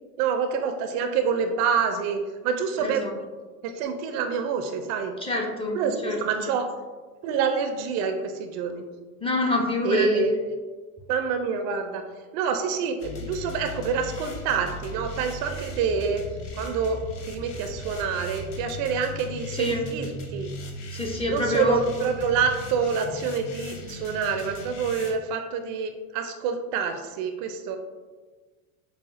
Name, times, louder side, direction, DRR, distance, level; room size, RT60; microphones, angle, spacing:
voice 1, 0.2-3.0 3.6-5.2 5.7-6.7 7.2-8.8 9.8-10.6 11.1-12.0 12.3-16.2 16.5-17.0 17.3-20.5 21.3-27.8, right 6 dB, 50° right, 6 dB, 0.4 m, -27 dB
voice 2, 2.8-3.1 5.2-6.4 9.2-10.3 19.5-19.8 20.9-21.8, left 2 dB, 15° left, 0 dB, 0.5 m, -26 dB
sound 1, 13.0-25.1, left 2 dB, 50° left, 0.8 m, -38 dB
5.5 x 2.3 x 2.5 m, 1.4 s
hypercardioid pair, 80°, 43 cm